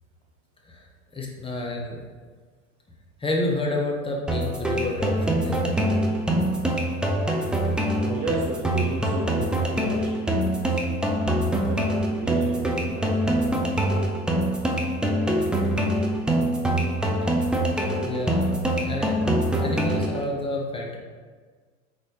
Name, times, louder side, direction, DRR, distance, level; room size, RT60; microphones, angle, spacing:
voice 1, 1.1-2.0 3.2-5.6 17.2-17.3 18.0-21.0, left 1 dB, 15° left, -1 dB, 0.9 m, -29 dB
sound 1, 4.3-20.3, right 1 dB, ahead, 0.4 m, -24 dB
voice 2, 8.0-13.5, right 3 dB, 40° right, -2 dB, 0.8 m, -34 dB
4.1 x 3.9 x 3.3 m, 1.5 s
hypercardioid pair, 85°, 38 cm